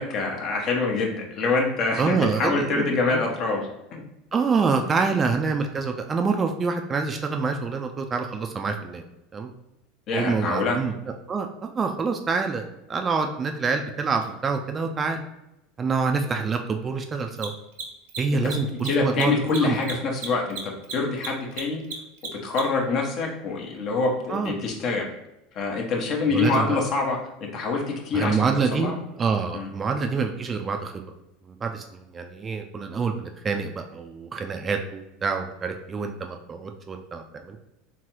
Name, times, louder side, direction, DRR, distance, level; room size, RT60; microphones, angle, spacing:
voice 1, 0.0-4.0 10.1-10.8 18.4-18.5 18.8-21.8 22.4-25.1 25.5-29.0 29.5-29.7, left 3 dB, 45° left, 0 dB, 0.9 m, -25 dB
voice 2, 2.0-3.2 4.3-9.0 9.3-9.5 10.1-10.9 11.3-15.2 15.8-17.5 18.2-19.3 19.6-19.8 24.3-24.5 26.3-26.7 28.1-31.0 31.5-37.6, right 5 dB, 25° right, 5 dB, 0.4 m, -26 dB
Mechanisms, 14.2-14.3 17.3-22.9, right 5 dB, 65° right, 0.6 m, -35 dB
3.6 x 3.1 x 3.0 m, 0.90 s
figure-of-eight pair, 75°, 0 cm